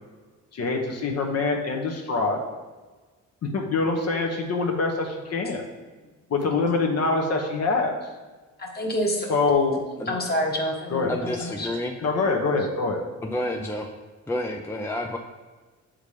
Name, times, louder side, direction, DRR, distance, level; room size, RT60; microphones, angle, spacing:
voice 1, 0.5-2.4 3.5-5.6 6.3-8.0 9.3-10.2 10.9-11.1 11.4-11.5 12.0-13.0, left 3 dB, 55° left, 1 dB, 1.1 m, -25 dB
voice 2, 8.6-9.3 10.1-11.7, equal, 30° left, 1 dB, 1.4 m, -28 dB
voice 3, 11.1-12.0 13.2-13.9 14.3-15.2, left 1 dB, 10° left, 2 dB, 0.5 m, -29 dB
7.1 x 3.8 x 4.9 m, 1.3 s
cardioid pair, 90°, 30 cm